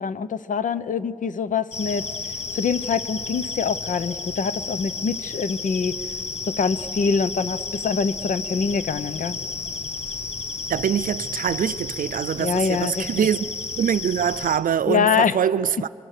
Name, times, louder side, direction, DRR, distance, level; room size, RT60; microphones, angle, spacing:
voice 1, 0.0-2.1 2.5-6.0 6.5-9.4 12.4-13.1 14.9-15.5, left 6 dB, 70° left, 0.7 m, -24 dB
sound 1, 1.7-14.6, left 4 dB, 50° left, 1.4 m, -32 dB
voice 2, 10.7-13.4 13.8-15.9, right 8 dB, 80° right, 0.5 m, -24 dB
29.5 x 23.0 x 6.7 m
wide cardioid pair, 160°, 14 cm